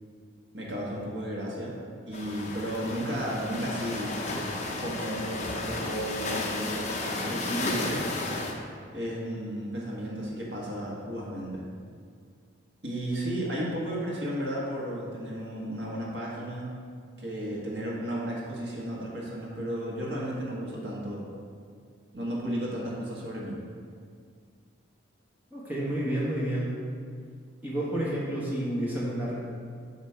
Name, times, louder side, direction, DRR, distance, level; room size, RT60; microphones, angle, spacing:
voice 1, 0.5-4.2 4.8-8.0 8.9-11.6 12.8-16.7 17.2-21.3 22.1-23.6, equal, 55° right, -4 dB, 1.5 m, -34 dB
sound 1, 2.1-8.5, left 2 dB, 35° left, 0.7 m, -33 dB
voice 2, 25.5-26.8 27.6-29.3, right 1 dB, 10° right, -7 dB, 1.1 m, -30 dB
8.1 x 3.0 x 5.7 m, 2.1 s
head